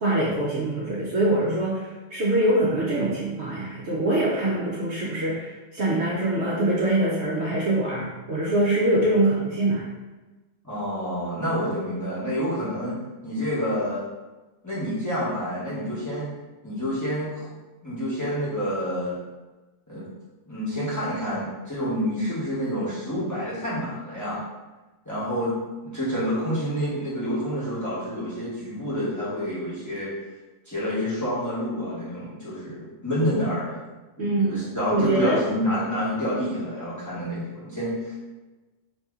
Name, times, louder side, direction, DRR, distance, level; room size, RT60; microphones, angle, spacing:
voice 1, 0.0-9.9 34.2-35.4, right 1 dB, 60° right, -5 dB, 0.8 m, -24 dB
voice 2, 10.6-12.9 13.2-14.0 14.6-16.3 16.6-17.5 17.8-19.2 19.9-20.0 20.5-24.4 25.0-25.5 25.8-30.1 30.7-33.8 34.2-38.1, equal, 15° left, -10 dB, 0.9 m, -28 dB
2.8 x 2.7 x 3.5 m, 1.2 s
omnidirectional pair, 1.4 m